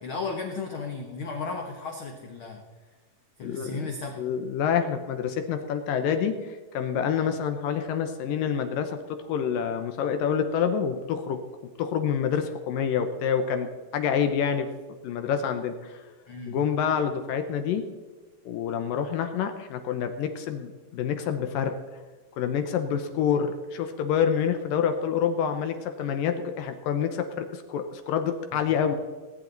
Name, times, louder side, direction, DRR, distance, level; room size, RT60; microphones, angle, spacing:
voice 1, 0.0-2.6 3.4-4.2 16.3-16.6 28.5-28.6, left 4 dB, 55° left, 2 dB, 1.5 m, -34 dB
voice 2, 3.4-9.0 9.2-11.4 11.8-13.7 13.9-14.7 15.0-16.0 16.5-17.8 18.5-21.7 22.4-29.0, left 7 dB, 80° left, 7 dB, 2.6 m, -27 dB
19.5 x 11.0 x 4.0 m, 1.4 s
omnidirectional pair, 4.0 m